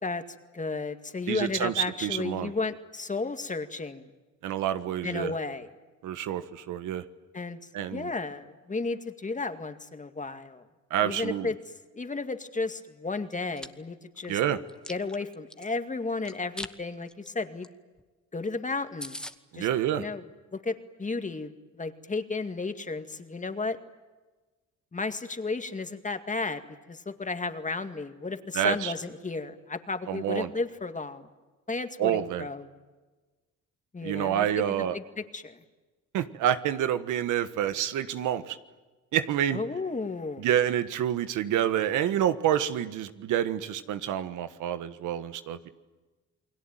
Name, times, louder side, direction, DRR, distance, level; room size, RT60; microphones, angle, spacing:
voice 1, 0.0-4.1 5.0-5.7 7.3-7.6 7.9-10.7 11.0-11.6 11.9-14.4 14.9-17.7 18.3-19.2 19.5-19.7 19.9-20.2 20.5-23.8 24.9-26.6 26.9-31.3 31.7-32.7 33.9-34.5 34.8-35.6 39.5-40.5, left 3 dB, 25° left, 8 dB, 2.2 m, -33 dB
voice 2, 1.3-2.5 4.4-5.3 6.0-7.0 7.7-8.1 10.9-11.5 14.3-14.6 19.5-20.0 28.5-28.9 30.1-30.5 32.0-32.5 34.0-35.0 36.1-38.6 39.1-39.6 40.4-45.7, right 10 dB, 90° right, 11 dB, 1.5 m, -28 dB
Chewing mastication, 13.3-13.7 14.2-15.7 16.2-16.7 17.1-17.3 17.6-17.7 18.0-18.1 18.4-18.5 18.7-18.8 19.0-19.3, left 1 dB, 5° left, 1.4 m, -40 dB
29.0 x 21.0 x 9.1 m, 1.2 s
cardioid pair, 90°, 30 cm